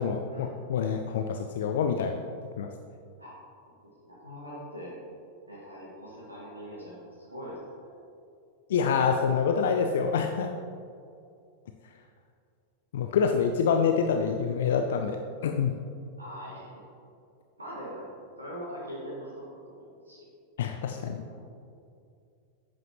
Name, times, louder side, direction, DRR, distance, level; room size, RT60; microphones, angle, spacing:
voice 1, 0.0-2.2 2.6-2.7 8.7-10.5 12.9-15.7 20.6-21.2, left 6 dB, 60° left, 6 dB, 0.5 m, -26 dB
voice 2, 4.0-4.9 5.5-7.9 16.2-16.8 17.6-18.0 18.4-20.3 21.0-21.4, equal, 80° right, -7 dB, 2.0 m, -42 dB
11.5 x 9.0 x 3.1 m, 2.5 s
figure-of-eight pair, 90°, 0 cm